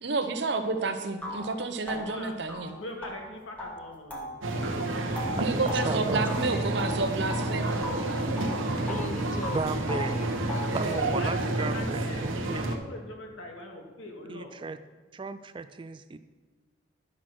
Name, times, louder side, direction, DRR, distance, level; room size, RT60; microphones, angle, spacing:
voice 1, 0.0-2.7 5.3-7.7, right 3 dB, 55° right, 8 dB, 0.9 m, -30 dB
sound 1, 0.6-0.7 1.2-7.5 7.8-9.1 9.4-10.8, left 1 dB, 5° left, 1.1 m, -38 dB
voice 2, 1.9-2.3 2.6-4.3 4.7-5.1 8.6-8.8 11.2-14.6, left 2 dB, 80° left, 1 dB, 1.9 m, -42 dB
sound 2, 4.4-12.8, right 2 dB, 80° right, 1.0 m, -29 dB
voice 3, 5.3-6.3 9.5-10.2 10.7-12.7 14.3-14.8 15.1-16.2, right 3 dB, 25° right, 12 dB, 0.3 m, -35 dB
voice 4, 8.9-11.6, left 3 dB, 35° left, 10 dB, 0.5 m, -42 dB
11.0 x 6.0 x 6.2 m, 1.3 s
head